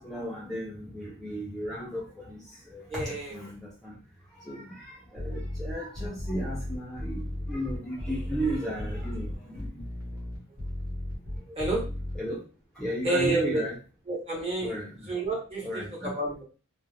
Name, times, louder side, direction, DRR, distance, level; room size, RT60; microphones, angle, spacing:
voice 1, 0.0-2.4 2.7-3.9 4.4-9.3 9.6-9.8 12.1-12.4 12.8-13.8 14.6-15.1 15.6-16.1, right 1 dB, ahead, -5 dB, 0.5 m, -34 dB
voice 2, 2.9-3.4 11.5-11.8 13.0-13.6 14.1-16.4, right 2 dB, 25° right, -3 dB, 1.0 m, -30 dB
sound 1, 5.2-12.2, left 1 dB, 65° right, 1.1 m, -35 dB
2.4 x 2.0 x 3.1 m, 0.35 s
head